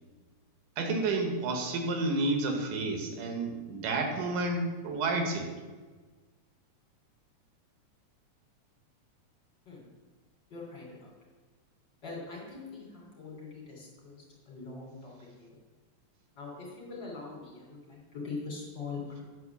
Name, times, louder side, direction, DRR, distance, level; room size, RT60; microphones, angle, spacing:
voice 1, 0.8-5.5, right 2 dB, 85° right, 4 dB, 2.7 m, -30 dB
voice 2, 10.5-11.1 12.0-15.1 15.4-15.5 16.4-19.2, left 4 dB, 40° left, -4 dB, 3.3 m, -42 dB
9.4 x 4.8 x 6.9 m, 1.3 s
omnidirectional pair, 3.5 m